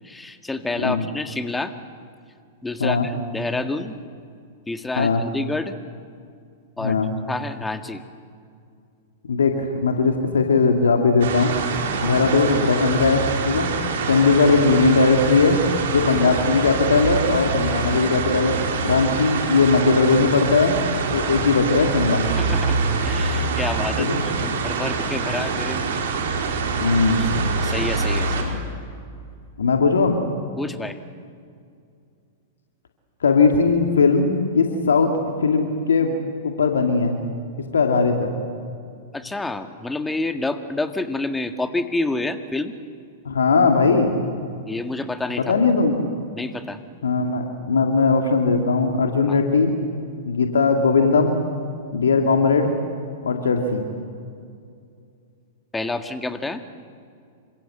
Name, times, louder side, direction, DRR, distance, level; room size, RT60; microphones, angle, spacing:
voice 1, 0.0-1.7 2.6-4.0 4.7-5.7 6.8-7.0 7.3-8.0 12.0-12.2 19.2-19.3 22.4-25.9 27.2-27.3 27.6-28.5 30.6-31.0 39.1-42.8 44.7-45.5 46.3-46.8 49.3-49.4 55.7-56.6, left 2 dB, 10° left, 8 dB, 1.8 m, -28 dB
voice 2, 9.3-11.5 12.0-13.7 14.1-15.6 15.9-18.5 18.8-20.8 21.1-22.2 24.0-24.2 26.8-27.3 29.6-30.2 33.2-35.1 35.4-36.2 36.4-37.2 37.7-38.3 43.3-44.2 45.5-46.0 47.0-49.7 50.3-51.4 51.9-52.7 53.2-53.8, left 4 dB, 75° left, 3 dB, 2.4 m, -19 dB
sound 1, 11.2-28.4, right 4 dB, 65° right, 4.8 m, -25 dB
28.0 x 25.5 x 8.0 m, 2.3 s
figure-of-eight pair, 105°, 0 cm